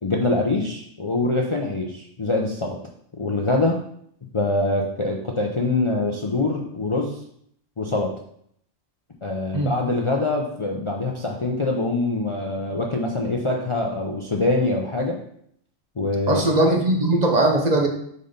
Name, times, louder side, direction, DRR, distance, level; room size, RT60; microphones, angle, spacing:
voice 1, 0.0-2.8 3.1-3.8 4.3-7.2 7.8-8.1 9.2-15.2 16.0-16.4, left 2 dB, 35° left, 0 dB, 0.5 m, -24 dB
voice 2, 16.3-17.9, right 2 dB, 40° right, 2 dB, 0.8 m, -19 dB
5.4 x 4.1 x 5.1 m, 0.68 s
omnidirectional pair, 1.3 m